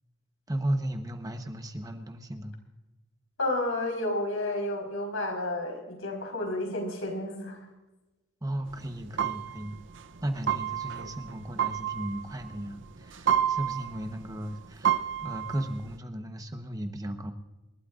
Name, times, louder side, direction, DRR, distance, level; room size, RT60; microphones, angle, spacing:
voice 1, 0.5-2.5 8.4-9.8 10.2-17.3, right 1 dB, 15° right, 6 dB, 1.0 m, -35 dB
voice 2, 3.4-7.6, left 1 dB, 75° left, 3 dB, 4.5 m, -31 dB
sound 1, 8.7-15.9, right 9 dB, 60° right, 0.6 m, -31 dB
28.0 x 12.5 x 2.5 m, 1.1 s
head